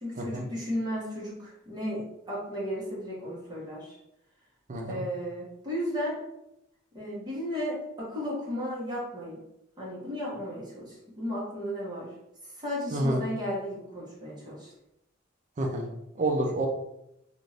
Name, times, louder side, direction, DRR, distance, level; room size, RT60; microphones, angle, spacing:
voice 1, 0.0-3.9 4.8-6.2 6.9-9.4 9.8-12.1 12.6-14.7, equal, 20° right, -6 dB, 1.2 m, -34 dB
voice 2, 4.7-5.0 12.9-13.2 15.6-15.9 16.2-16.7, right 1 dB, 35° right, 0 dB, 0.5 m, -28 dB
2.5 x 2.5 x 3.2 m, 0.83 s
head